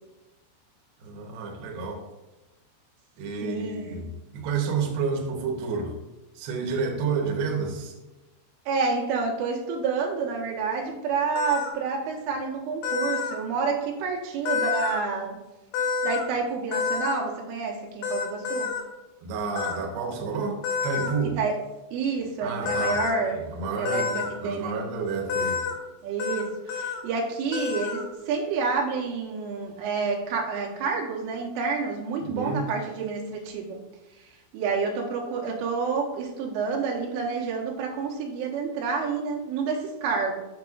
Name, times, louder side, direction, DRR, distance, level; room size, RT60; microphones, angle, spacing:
voice 1, 1.0-2.0 3.2-4.1 4.3-5.9 6.4-7.9 19.2-21.4 22.4-23.0 23.3-25.6 32.2-32.6, right 5 dB, 70° right, 0 dB, 2.6 m, -30 dB
voice 2, 3.4-4.0 8.7-15.4 16.0-18.7 21.4-21.6 21.9-24.8 26.0-33.8 34.2-34.3 34.5-40.4, right 4 dB, 90° right, -2 dB, 3.5 m, -29 dB
sound 1, 11.4-11.7 12.8-13.4 14.5-15.0 15.7-16.3 16.7-17.2 18.0-18.8 19.6-19.8 20.6-21.1 22.7-23.1 23.9-24.3 25.3-25.8 26.2-26.4 26.7-27.0 27.5-28.0, left 5 dB, 90° left, 3.3 m, -28 dB
8.0 x 6.0 x 2.4 m, 1.0 s
omnidirectional pair, 5.4 m